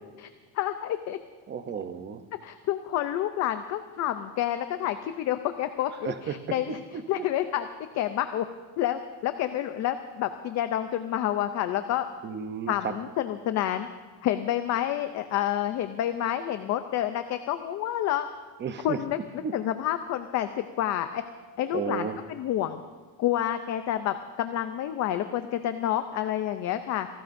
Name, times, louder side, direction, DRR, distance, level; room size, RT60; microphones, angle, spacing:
voice 1, 0.5-1.2 2.4-7.7 7.9-8.4 8.8-12.0 12.7-13.9 14.2-18.3 18.8-21.2 21.6-22.8 23.2-27.1, left 12 dB, 40° left, 9 dB, 0.5 m, -29 dB
voice 2, 1.5-2.2 6.0-6.4 6.9-7.2 12.2-12.7 18.6-19.0 19.4-19.5 21.7-22.1, right 7 dB, 25° right, 10 dB, 0.6 m, -33 dB
26.5 x 18.0 x 2.6 m, 1.3 s
cardioid pair, 175°, 47 cm